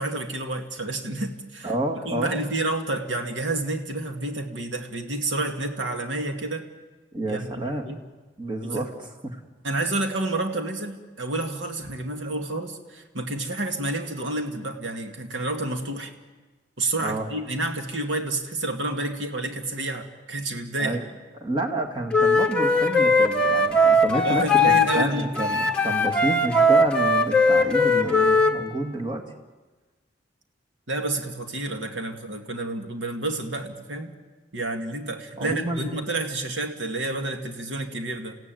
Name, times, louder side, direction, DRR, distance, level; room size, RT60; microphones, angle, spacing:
voice 1, 0.0-1.7 2.0-6.6 7.2-8.0 8.6-8.9 9.6-16.1 16.8-21.0 24.2-25.3 30.9-34.1 34.5-38.4, right 2 dB, 75° right, 4 dB, 2.2 m, -29 dB
voice 2, 1.6-2.4 7.1-8.0 8.4-9.4 17.0-17.3 20.8-21.0 21.4-29.3 35.4-35.9, right 1 dB, 25° right, 3 dB, 2.1 m, -29 dB
Wind instrument woodwind instrument, 22.1-25.1 25.4-28.5, left 1 dB, 5° left, 1.5 m, -19 dB
29.0 x 16.5 x 9.2 m, 1.3 s
head